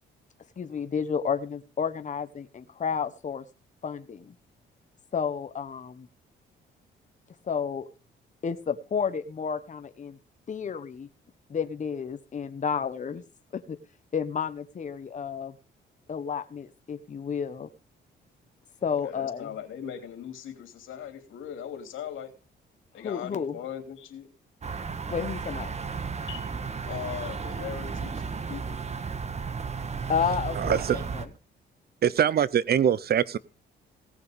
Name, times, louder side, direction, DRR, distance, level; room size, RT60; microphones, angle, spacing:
voice 1, 0.6-3.4 3.8-4.3 5.1-6.1 7.4-7.9 8.4-10.2 10.5-11.1 11.5-13.2 13.5-13.8 14.1-15.6 16.1-17.7 18.8-19.5 23.0-23.5 25.1-25.7 30.1-31.3, left 6 dB, 40° left, 1.2 m, -31 dB
voice 2, 19.0-22.3 22.9-24.3 26.3-26.5 26.9-28.8, left 9 dB, 80° left, 3.1 m, -39 dB
sound 1, 24.6-31.3, right 5 dB, 35° right, 1.5 m, -34 dB
voice 3, 30.6-31.0 32.0-33.4, right 9 dB, 50° right, 0.7 m, -23 dB
17.5 x 6.7 x 5.2 m
cardioid pair, 90°, 20 cm